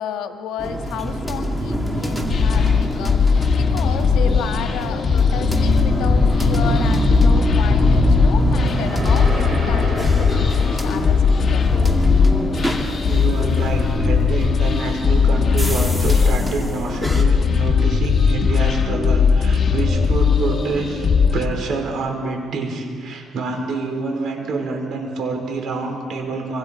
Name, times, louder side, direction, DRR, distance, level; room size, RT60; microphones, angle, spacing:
voice 1, 0.0-11.7, left 8 dB, 85° left, 6 dB, 1.4 m, -32 dB
sound 1, 0.6-17.2, right 1 dB, 5° right, 2.3 m, -24 dB
sound 2, 2.3-21.5, left 6 dB, 40° left, 1.7 m, -18 dB
sound 3, 7.8-12.1, right 1 dB, 35° right, 7.8 m, -32 dB
voice 2, 13.0-26.6, right 3 dB, 65° right, 3 dB, 4.5 m, -27 dB
25.5 x 25.0 x 5.2 m, 2.1 s
cardioid pair, 100°, 0 cm